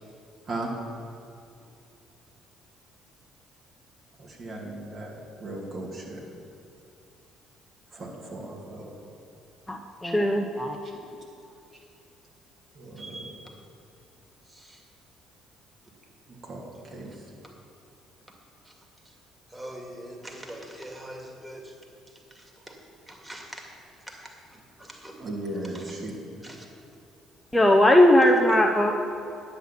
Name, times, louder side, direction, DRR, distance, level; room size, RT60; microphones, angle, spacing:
voice 1, 4.2-6.2 7.9-8.9 10.8-10.9 12.7-13.4 16.4-17.1 25.2-26.5, right 2 dB, 45° right, -2 dB, 2.5 m, -37 dB
voice 2, 9.7-10.8 27.5-28.9, left 1 dB, 10° left, 1 dB, 0.8 m, -19 dB
voice 3, 13.0-13.5 14.5-14.8 18.7-18.8 19.5-21.7 22.4-22.7 23.1-23.7 24.1-25.2 25.7-25.8 26.4-26.7, right 1 dB, 10° right, 1 dB, 2.3 m, -43 dB
10.0 x 8.0 x 5.8 m, 2.6 s
hypercardioid pair, 50°, 0 cm